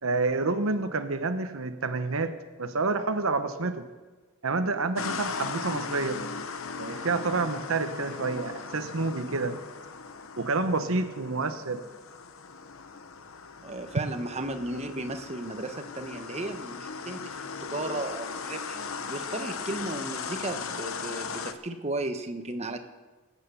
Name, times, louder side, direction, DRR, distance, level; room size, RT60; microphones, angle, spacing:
voice 1, 0.0-3.9 4.4-6.2 6.8-9.6 10.4-11.8, right 3 dB, 65° right, 9 dB, 0.9 m, -28 dB
sound 1, 5.0-21.5, left 5 dB, 65° left, 0.9 m, -38 dB
voice 2, 13.6-18.8 19.1-22.8, right 2 dB, 30° right, 7 dB, 1.1 m, -35 dB
19.0 x 9.2 x 7.0 m, 1.3 s
head